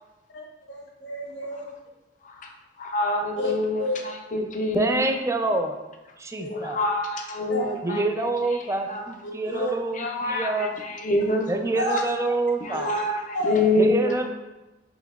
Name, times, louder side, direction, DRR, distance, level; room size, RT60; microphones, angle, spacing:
voice 1, 0.3-1.6 3.4-3.5 3.8-4.0 6.4-6.6 7.5-7.8 9.2-9.7 11.7-12.0 12.7-13.0 13.3-13.6, left 1 dB, 75° left, 0 dB, 0.9 m, -30 dB
voice 2, 2.2-5.0 6.5-8.0 8.5-9.0 9.5-9.6 9.9-11.5 12.6-14.1, left 2 dB, 45° left, 2 dB, 0.5 m, -26 dB
voice 3, 4.7-5.8 6.2-6.8 7.8-10.8 11.5-12.9 13.8-14.3, right 2 dB, 15° right, 5 dB, 0.3 m, -26 dB
5.3 x 3.7 x 2.4 m, 1.1 s
head